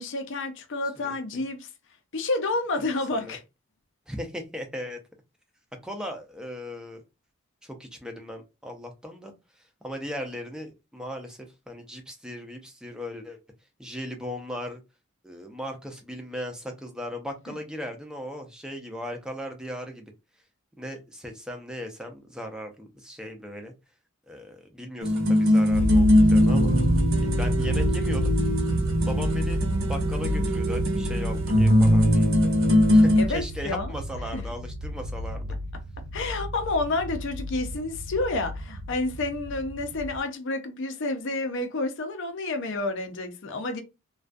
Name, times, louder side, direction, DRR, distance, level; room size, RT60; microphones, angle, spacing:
voice 1, 0.0-1.7 2.1-3.4 33.2-34.0 34.3-34.4 36.1-43.8, left 2 dB, 55° left, 0.5 m, -29 dB
voice 2, 1.0-1.4 2.8-3.3 4.1-5.0 5.8-7.0 7.6-9.3 9.8-11.4 11.7-13.4 13.8-14.8 15.2-20.1 20.8-23.7 24.3-26.7 27.2-28.3 29.0-32.3 32.9-35.5, equal, 5° right, 0.4 m, -37 dB
sound 1, 25.0-33.2, equal, 65° right, 0.7 m, -21 dB
sound 2, 25.7-40.2, equal, 85° right, 0.3 m, -30 dB
2.3 x 2.2 x 2.5 m
head